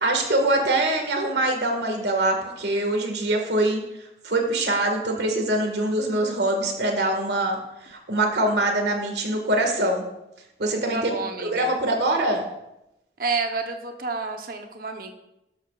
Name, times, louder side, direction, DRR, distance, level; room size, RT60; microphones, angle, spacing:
voice 1, 0.0-3.8 4.2-10.0 10.6-11.1 11.4-12.4, right 1 dB, 75° right, 3 dB, 1.9 m, -23 dB
voice 2, 10.9-11.7 13.2-15.1, right 4 dB, 55° right, 4 dB, 1.0 m, -29 dB
12.0 x 12.0 x 2.5 m, 0.90 s
head